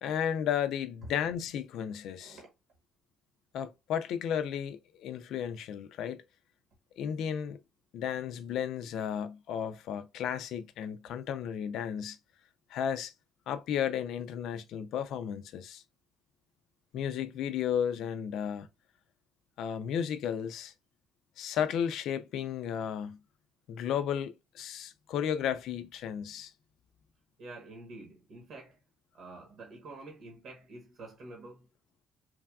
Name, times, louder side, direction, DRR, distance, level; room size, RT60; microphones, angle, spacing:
voice 1, 0.0-2.4 3.5-6.2 7.0-7.6 7.9-12.2 12.7-13.1 13.5-15.8 16.9-18.7 19.6-20.7 21.4-23.2 23.7-26.5, left 8 dB, 70° left, 0.4 m, -33 dB
voice 2, 2.2-2.5 27.4-28.8 29.1-31.7, right 2 dB, 65° right, 1.0 m, -48 dB
3.3 x 2.3 x 2.3 m
cardioid pair, 100°, 0 cm